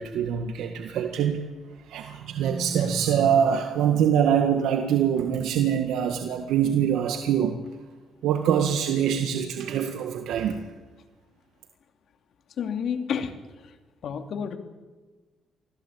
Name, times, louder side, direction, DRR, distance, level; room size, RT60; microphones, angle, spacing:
voice 1, 0.0-1.4 1.9-7.6 8.2-10.6, right 8 dB, 85° right, 4 dB, 1.7 m, -24 dB
voice 2, 12.6-13.8 14.0-14.6, left 7 dB, 65° left, 6 dB, 2.8 m, -30 dB
25.5 x 16.5 x 8.7 m, 1.3 s
cardioid pair, 90°, 0 cm